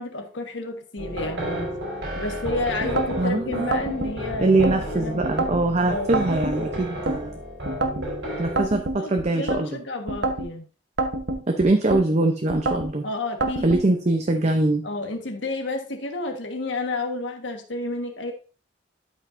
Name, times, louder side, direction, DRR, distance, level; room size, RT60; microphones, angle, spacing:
voice 1, 0.0-1.7 2.1-5.2 5.9-6.1 8.9-10.7 13.0-13.7 14.8-18.3, left 2 dB, 85° left, 4 dB, 1.4 m, -31 dB
sound 1, 1.0-8.6, equal, 85° right, 4.3 m, -32 dB
sound 2, 2.8-3.2 3.7-4.8 5.2-5.6 6.1-7.2 7.6-8.1 8.6-9.6 10.1-10.5 11.0-12.0 12.5-12.9 13.4-13.8, right 2 dB, 60° right, 1.0 m, -27 dB
voice 2, 3.2-3.7 4.4-7.4 8.4-9.8 11.5-13.0 13.6-14.8, right 2 dB, 40° right, 4 dB, 0.7 m, -22 dB
12.0 x 5.3 x 2.6 m, 0.38 s
head